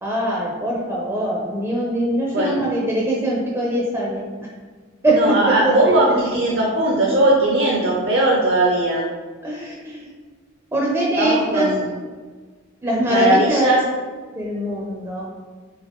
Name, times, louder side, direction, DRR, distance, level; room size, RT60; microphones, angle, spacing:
voice 1, 0.0-4.3 5.0-5.4 5.6-6.0 9.4-10.1 10.7-11.7 12.8-13.7 14.3-15.3, right 1 dB, 15° right, -3 dB, 0.5 m, -22 dB
voice 2, 2.3-2.7 5.1-9.1 11.1-11.9 13.1-13.8, right 1 dB, 55° right, -2 dB, 0.6 m, -19 dB
3.6 x 3.3 x 3.6 m, 1.5 s
head